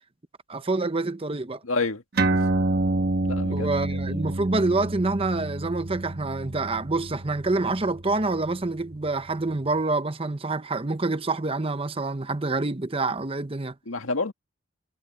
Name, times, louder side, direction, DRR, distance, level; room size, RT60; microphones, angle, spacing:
voice 1, 0.5-1.6 3.5-13.7, right 3 dB, 25° right, 0.9 m, -27 dB
voice 2, 1.6-2.0 2.3-2.4 3.3-3.7 4.1-4.2 13.9-14.3, left 3 dB, 85° left, 2.0 m, -28 dB
sound 1, 2.2-9.1, right 2 dB, 50° right, 1.3 m, -28 dB
head